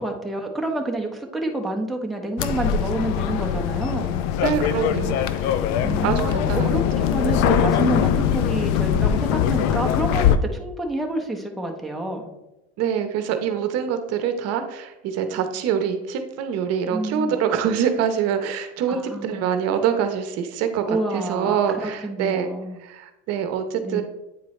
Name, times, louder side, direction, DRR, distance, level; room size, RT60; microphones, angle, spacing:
voice 1, 0.0-4.2 5.8-12.3 16.9-17.3 19.0-19.5 20.9-21.6 21.8-22.7 23.8-24.0, right 2 dB, ahead, 0 dB, 0.8 m, -28 dB
sound 1, 2.4-10.4, left 9 dB, 65° left, 0.5 m, -21 dB
voice 2, 4.4-5.5 6.0-7.1 12.8-22.5 22.8-24.0, right 8 dB, 60° right, 8 dB, 0.8 m, -25 dB
8.6 x 4.5 x 3.1 m, 0.98 s
supercardioid pair, 115°, 29 cm